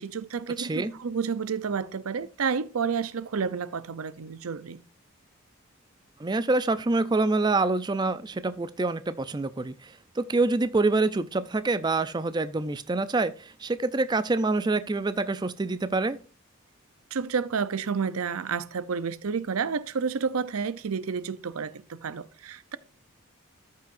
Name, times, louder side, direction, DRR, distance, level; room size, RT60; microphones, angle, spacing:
voice 1, 0.0-4.8 17.1-22.8, right 5 dB, 85° right, 0.6 m, -30 dB
voice 2, 0.6-0.9 6.2-16.2, right 3 dB, 20° right, 0.4 m, -26 dB
13.5 x 5.6 x 2.5 m
head